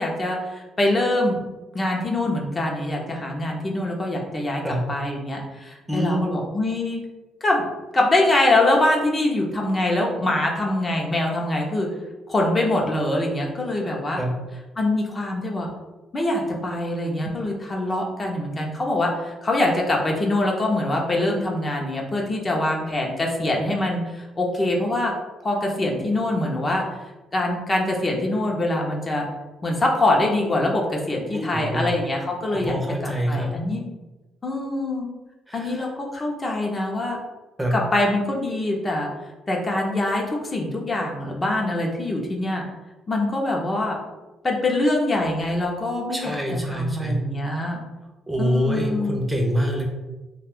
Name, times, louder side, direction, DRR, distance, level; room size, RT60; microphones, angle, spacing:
voice 1, 0.0-1.4 1.7-4.6 4.9-7.0 7.4-7.6 7.9-11.9 12.3-14.2 14.8-15.7 16.1-25.1 25.4-26.8 27.3-29.3 29.6-32.7 33.0-33.8 34.4-35.1 35.5-37.2 37.7-39.1 39.5-42.6 43.1-44.0 44.4-46.4 46.6-47.8 48.4-49.2, left 1 dB, 30° left, 0 dB, 0.6 m, -24 dB
voice 2, 5.9-6.2 14.2-14.3 31.3-31.9 32.6-33.5 35.5-35.8 37.6-37.7 46.1-47.2 48.3-49.8, equal, 10° right, 0 dB, 0.5 m, -25 dB
2.5 x 2.3 x 3.5 m, 1.1 s
cardioid pair, 90°, 0 cm